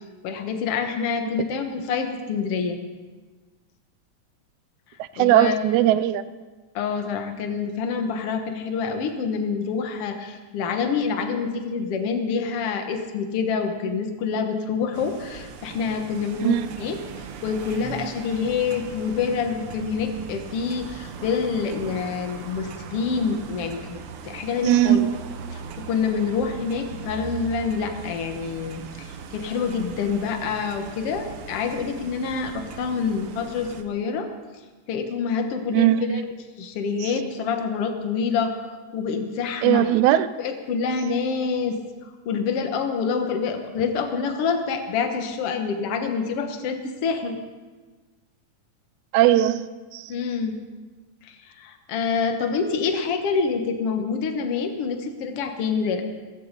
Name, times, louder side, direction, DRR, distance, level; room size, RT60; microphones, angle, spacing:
voice 1, 0.2-2.8 5.2-5.6 6.8-17.0 17.4-25.1 25.5-34.3 34.9-36.3 36.6-39.9 40.4-41.8 42.3-47.4 50.1-50.6 51.2-56.0, left 5 dB, 60° left, 5 dB, 2.0 m, -27 dB
voice 2, 5.0-6.2 16.4-16.7 24.6-25.2 35.7-36.2 37.0-37.1 39.6-40.3 49.1-50.1, right 13 dB, 85° right, 14 dB, 2.0 m, -19 dB
sound 1, 14.9-33.8, right 6 dB, 65° right, 1.5 m, -39 dB
17.5 x 15.5 x 4.1 m, 1.3 s
omnidirectional pair, 3.4 m